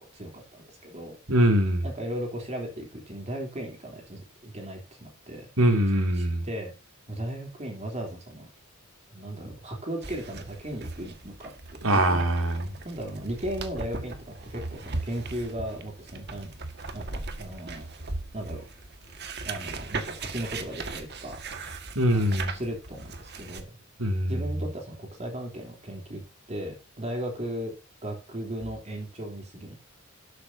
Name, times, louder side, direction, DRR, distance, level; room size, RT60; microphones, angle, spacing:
voice 1, 0.1-1.2 1.8-5.5 6.1-6.7 7.1-8.5 9.1-11.5 11.9-12.2 12.8-16.5 16.9-17.9 18.3-18.6 19.4-21.7 22.1-23.8 24.3-26.2 26.5-27.7 28.0-29.8, right 1 dB, 30° right, 3.4 m, -36 dB
voice 2, 1.3-1.9 5.6-6.4 11.8-12.7 21.9-22.5 24.0-24.4, right 1 dB, 75° right, 3.4 m, -23 dB
sound 1, 10.0-23.6, right 3 dB, 50° right, 1.8 m, -38 dB
13.0 x 11.5 x 2.8 m
head